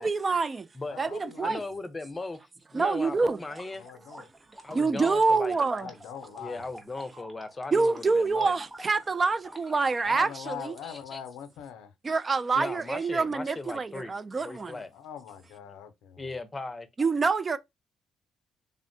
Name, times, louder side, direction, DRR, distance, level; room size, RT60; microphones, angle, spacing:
voice 1, 0.0-0.7 1.0-1.6 2.7-3.4 4.7-5.9 7.7-10.7 12.0-14.7 17.0-17.6, right 4 dB, 35° right, 0.3 m, -26 dB
voice 2, 0.9-1.7 3.8-4.3 5.8-6.7 10.0-11.9 14.4-16.2, left 8 dB, 90° left, 0.5 m, -43 dB
voice 3, 1.4-3.9 4.6-5.6 6.4-8.5 9.8-9.9 10.8-11.2 12.5-14.1 14.4-14.9 16.2-16.9, left 3 dB, 25° left, 0.6 m, -38 dB
sound 1, 2.9-10.0, right 1 dB, 10° right, 0.9 m, -49 dB
3.4 x 2.1 x 2.6 m
cardioid pair, 80°, 0 cm